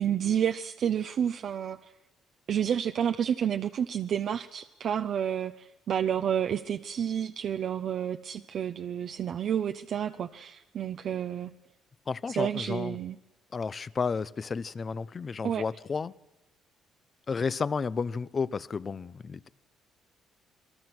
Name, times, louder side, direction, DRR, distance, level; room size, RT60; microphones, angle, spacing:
voice 1, 0.0-1.8 2.5-11.5 12.4-13.2 15.4-15.6, right 9 dB, 55° right, 6 dB, 0.8 m, -30 dB
voice 2, 12.1-13.0 13.5-16.1 17.3-19.5, left 5 dB, 35° left, 19 dB, 0.7 m, -32 dB
28.0 x 21.0 x 6.1 m, 1.0 s
cardioid pair, 115°, 0 cm